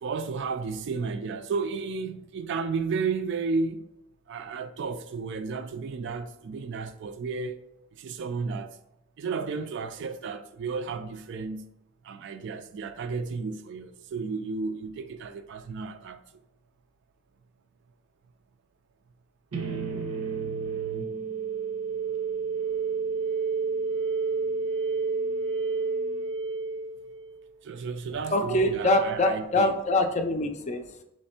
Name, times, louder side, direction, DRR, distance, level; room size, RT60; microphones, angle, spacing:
voice 1, 0.0-3.9 4.3-7.7 7.9-8.8 9.2-11.7 12.0-16.2 27.6-29.7, right 4 dB, 55° right, 0.3 m, -33 dB
sound 1, 19.5-27.4, right 5 dB, 85° right, 0.7 m, -30 dB
voice 2, 28.3-31.0, left 1 dB, 35° left, 0.4 m, -24 dB
3.3 x 3.2 x 4.2 m
head